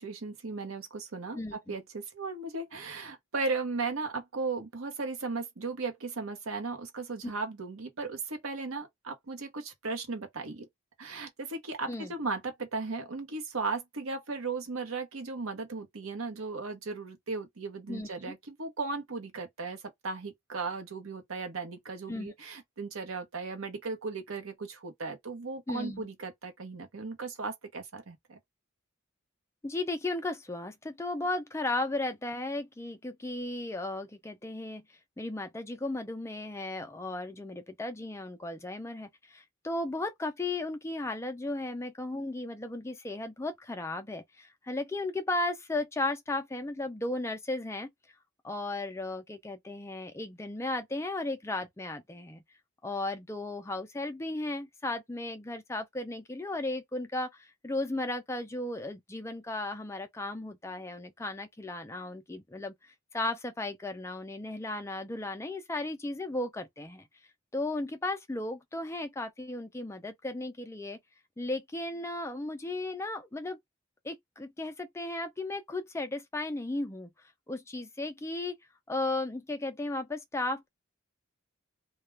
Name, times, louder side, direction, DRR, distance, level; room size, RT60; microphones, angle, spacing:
voice 1, 0.0-10.7 11.0-28.4, right 4 dB, 90° right, 0.9 m, -36 dB
voice 2, 1.3-1.7 11.9-12.1 17.9-18.3 22.1-22.3 25.7-26.1 29.6-34.8 35.2-47.9 48.4-52.4 52.8-67.1 67.5-71.0 71.4-73.6 74.0-77.1 77.5-78.6 78.9-80.7, left 2 dB, 15° left, 0.3 m, -35 dB
2.3 x 2.2 x 3.1 m
head